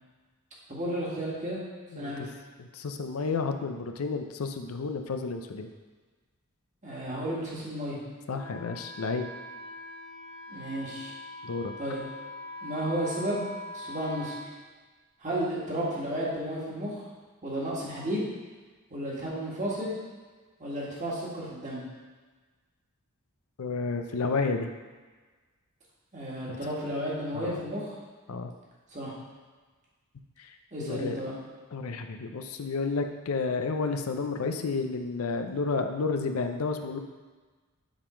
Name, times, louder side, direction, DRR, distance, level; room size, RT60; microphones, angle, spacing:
voice 1, 0.7-1.6 1.9-2.3 6.8-8.0 10.5-11.1 11.8-12.0 12.6-13.5 13.7-14.3 15.2-17.0 17.4-18.3 18.9-20.0 20.6-21.8 26.1-27.9 28.9-29.1 30.7-31.3, right 1 dB, 35° right, -6 dB, 1.7 m, -33 dB
voice 2, 1.9-2.3 2.6-5.7 8.3-9.3 11.4-11.7 23.6-24.7 26.5-26.6 27.3-27.6 28.3-28.5 30.4-30.5 30.8-31.2 31.7-37.0, left 4 dB, 80° left, 6 dB, 0.5 m, -31 dB
Wind instrument woodwind instrument, 8.3-14.5, left 1 dB, 50° left, 1.8 m, -42 dB
7.2 x 3.8 x 4.9 m, 1.4 s
head